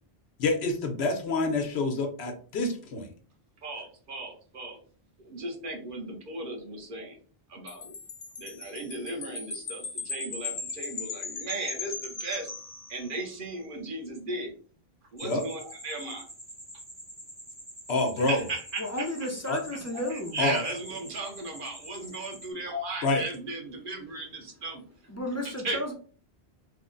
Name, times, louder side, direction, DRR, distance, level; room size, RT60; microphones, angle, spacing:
voice 1, 0.4-3.1 15.2-15.4 17.9-18.4 19.5-19.6 20.4-20.7 23.0-23.2, left 2 dB, 80° left, 4 dB, 1.1 m, -27 dB
voice 2, 3.6-4.8 5.2-7.2 7.5-7.9 8.4-12.5 12.9-14.5 15.1-16.3 18.2-18.8 19.9-24.8 25.4-25.8, right 2 dB, 55° right, 2 dB, 1.0 m, -36 dB
Wind chime, 7.7-13.4, left 4 dB, 55° left, 1.0 m, -38 dB
sound 1, 15.2-22.5, equal, 10° right, 0.7 m, -47 dB
voice 3, 18.8-20.5 25.1-25.9, left 1 dB, 20° left, 0 dB, 0.4 m, -33 dB
3.3 x 2.1 x 3.7 m, 0.41 s
omnidirectional pair, 1.1 m